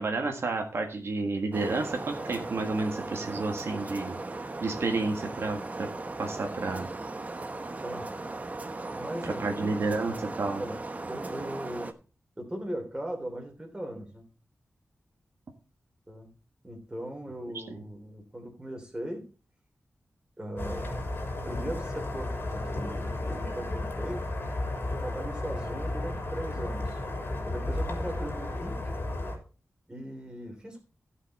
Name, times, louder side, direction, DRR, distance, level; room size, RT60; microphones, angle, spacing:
voice 1, 0.0-4.2 4.6-5.9 6.2-6.9 9.2-10.6, right 3 dB, 65° right, 3 dB, 1.7 m, -31 dB
sound 1, 1.5-11.9, right 2 dB, 30° right, 1.0 m, -37 dB
voice 2, 8.9-9.8 10.5-10.8 11.1-11.9 12.4-14.2 16.1-16.3 16.6-19.2 20.4-21.2 21.4-24.2 24.9-27.0 27.4-28.8 29.9-30.8, right 1 dB, 15° right, 2 dB, 3.3 m, -38 dB
Footsteps Walking Boot Pontoon to Standstill Faint Aircraft, 20.6-29.4, left 2 dB, 50° left, 3.6 m, -33 dB
15.5 x 5.7 x 4.1 m, 0.36 s
wide cardioid pair, 110°, 5 cm